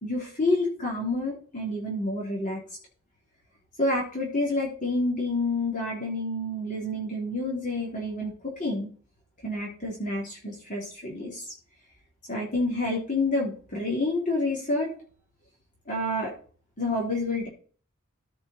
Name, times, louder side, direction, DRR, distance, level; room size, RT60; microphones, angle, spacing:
voice 1, 0.0-2.6 3.8-8.9 9.4-11.5 12.3-14.9 15.9-16.3 16.8-17.5, left 2 dB, 40° left, -3 dB, 3.1 m, -28 dB
15.0 x 5.5 x 4.3 m, 0.43 s
head